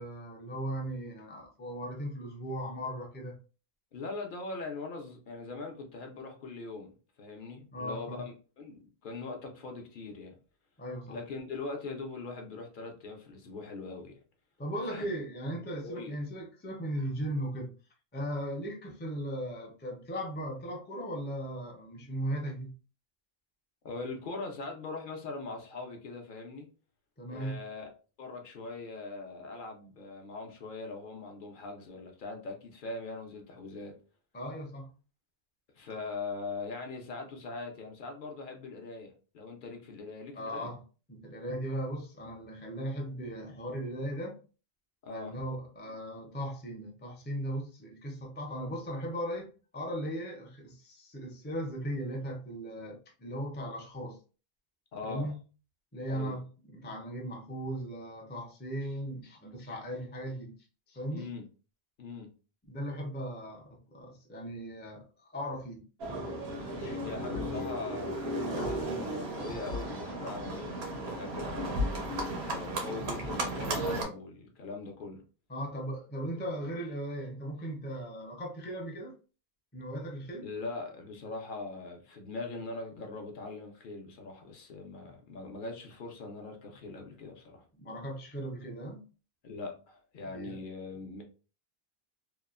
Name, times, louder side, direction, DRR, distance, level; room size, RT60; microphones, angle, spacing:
voice 1, 0.0-3.4 7.7-8.2 10.8-11.2 14.6-17.7 18.1-22.7 27.2-27.6 34.3-34.9 40.3-40.8 41.1-44.4 45.1-54.2 55.1-55.4 55.9-60.5 60.9-61.3 62.7-65.8 66.8-67.0 67.3-67.4 75.5-79.1 79.7-80.5 87.8-89.0 90.3-90.6, equal, 20° left, 0.3 m, -37 dB
voice 2, 3.9-6.9 7.2-10.3 11.1-14.2 14.8-15.0 15.8-16.2 23.8-26.7 27.3-27.9 28.2-34.0 35.8-40.7 45.0-45.4 54.9-55.3 56.1-56.4 61.1-61.4 62.0-62.3 67.0-71.6 72.4-75.2 80.4-87.6 89.4-91.2, left 3 dB, 60° left, 0.7 m, -41 dB
Livestock farm animals working animals, 66.0-74.0, right 1 dB, 90° right, 0.9 m, -34 dB
2.9 x 2.0 x 2.3 m
omnidirectional pair, 1.0 m